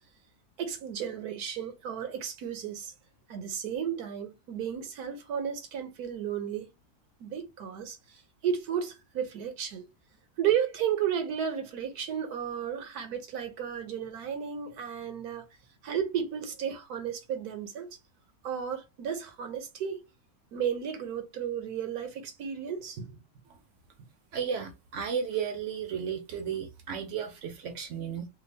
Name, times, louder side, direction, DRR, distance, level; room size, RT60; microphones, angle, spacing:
voice 1, 0.6-2.9 3.3-6.7 7.2-8.0 8.4-9.8 10.4-15.4 15.8-17.9 18.4-20.0 20.5-23.2, right 8 dB, 85° right, 1.3 m, -33 dB
voice 2, 24.3-28.3, right 7 dB, 60° right, 0.9 m, -34 dB
3.4 x 2.3 x 3.3 m
omnidirectional pair, 1.6 m